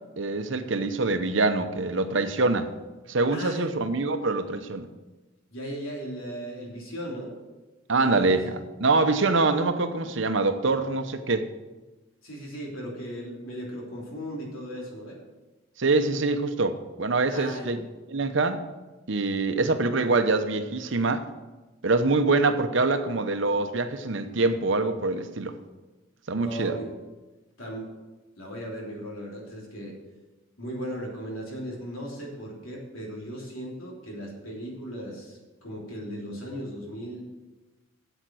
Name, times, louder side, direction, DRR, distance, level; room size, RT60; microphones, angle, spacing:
voice 1, 0.2-2.7 3.1-4.9 7.9-11.5 15.8-17.8 18.1-18.6 19.1-21.2 21.8-25.5 26.3-26.8, right 3 dB, 65° right, 9 dB, 0.8 m, -24 dB
voice 2, 3.3-3.7 5.5-7.3 7.9-8.6 12.2-15.2 17.3-17.9 26.4-27.0 27.6-27.9 28.4-29.9 30.6-37.2, equal, 85° left, -2 dB, 3.3 m, -37 dB
8.8 x 8.0 x 6.2 m, 1.2 s
head